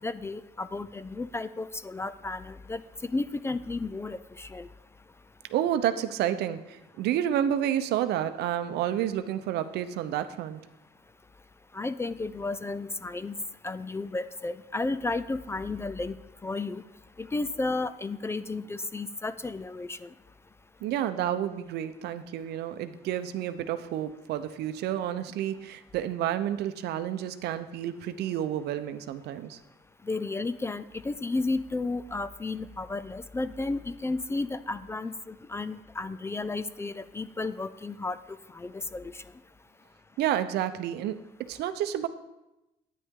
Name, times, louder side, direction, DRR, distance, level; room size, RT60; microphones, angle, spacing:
voice 1, 0.0-4.7 11.7-13.3 13.6-16.8 17.2-20.1 30.0-39.2, left 3 dB, 15° left, 14 dB, 0.3 m, -33 dB
voice 2, 5.5-10.6 20.8-29.6 40.2-42.1, right 11 dB, 75° right, 11 dB, 0.7 m, -30 dB
9.8 x 9.4 x 3.7 m, 0.94 s
cardioid pair, 110°, 17 cm